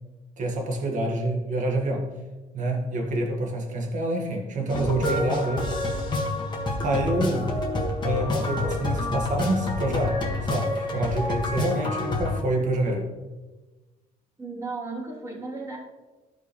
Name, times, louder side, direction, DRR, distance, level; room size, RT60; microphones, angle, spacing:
voice 1, 0.4-2.1 2.5-5.7 6.8-7.5 8.0-10.2 10.5-13.1, right 1 dB, 50° right, 1 dB, 1.7 m, -27 dB
sound 1, 4.7-12.4, left 2 dB, 25° left, 1.7 m, -28 dB
voice 2, 14.4-15.8, right 3 dB, 15° right, -6 dB, 3.1 m, -34 dB
14.0 x 5.2 x 3.2 m, 1.2 s
cardioid pair, 110°, 17 cm